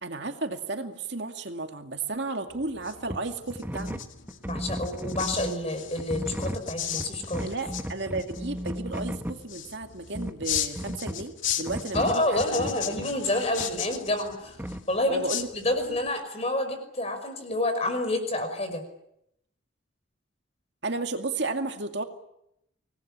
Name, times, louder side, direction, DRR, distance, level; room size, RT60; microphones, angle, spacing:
voice 1, 0.0-4.0 7.4-13.1 15.1-15.5 20.8-22.0, right 3 dB, 60° right, 5 dB, 2.3 m, -33 dB
sound 1, 2.5-16.1, left 10 dB, 80° left, 2.3 m, -37 dB
sound 2, 3.1-3.2 3.5-5.6 6.0-9.4 10.1-11.3 11.7-13.1 13.6-13.7 14.6-14.8, equal, 10° right, 1.1 m, -35 dB
voice 2, 4.5-7.4 11.9-14.6 14.9-15.2 15.5-18.8, left 1 dB, 30° left, 7 dB, 5.6 m, -28 dB
25.5 x 19.5 x 10.0 m, 0.80 s
head